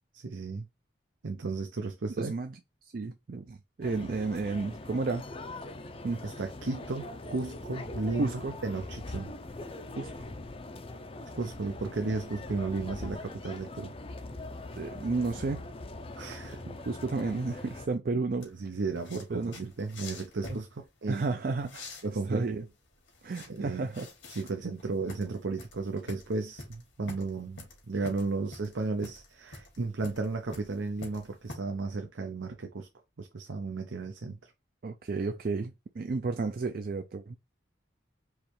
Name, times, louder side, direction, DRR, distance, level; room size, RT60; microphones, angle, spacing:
voice 1, 0.1-0.7 1.2-2.3 6.2-9.3 11.3-13.9 16.2-16.6 18.1-21.2 22.0-22.5 23.5-23.9 24.3-32.9 33.2-34.4, right 3 dB, 85° right, 0.7 m, -34 dB
voice 2, 2.2-2.6 2.9-5.3 6.0-6.2 8.2-8.5 10.0-10.2 14.7-15.7 16.7-18.5 19.3-19.6 20.5-20.6 21.1-22.0 22.3-22.7 23.2-24.1 29.8-29.9 34.8-37.4, right 3 dB, 50° right, 0.4 m, -32 dB
sound 1, 3.8-17.9, left 2 dB, 30° left, 0.5 m, -42 dB
sound 2, 18.4-31.6, left 2 dB, 90° left, 2.1 m, -47 dB
4.8 x 3.1 x 3.2 m
head